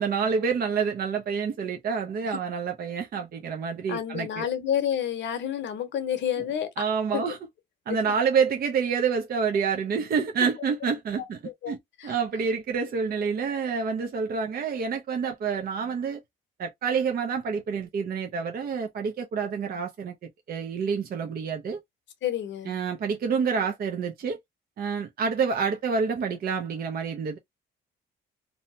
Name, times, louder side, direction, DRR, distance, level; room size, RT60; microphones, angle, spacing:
voice 1, 0.0-4.4 6.8-7.4 7.9-11.4 11.7-16.2 16.6-20.1 20.5-21.8 22.7-24.4 24.8-27.4, right 6 dB, 50° right, 0.6 m, -28 dB
voice 2, 3.9-6.7 7.1-7.2 7.9-8.0 11.2-12.1 22.2-22.7, left 9 dB, 70° left, 0.8 m, -30 dB
2.7 x 2.2 x 2.7 m
cardioid pair, 90°, 20 cm